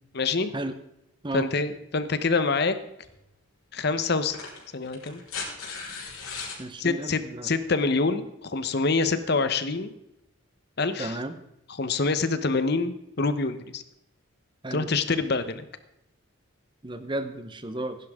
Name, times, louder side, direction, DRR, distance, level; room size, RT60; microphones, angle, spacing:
voice 1, 0.2-0.5 1.3-2.8 3.7-4.4 4.7-5.2 6.8-9.9 10.8-11.2 11.8-13.8 14.7-15.6, left 3 dB, 50° left, 12 dB, 0.9 m, -26 dB
sound 1, 3.0-3.2 4.2-6.6 8.1-8.2, left 5 dB, 85° left, 4.5 m, -37 dB
voice 2, 6.6-7.5 11.0-11.4 14.6-14.9 16.8-18.0, right 1 dB, 20° right, 10 dB, 0.9 m, -33 dB
16.0 x 11.0 x 3.6 m, 0.83 s
head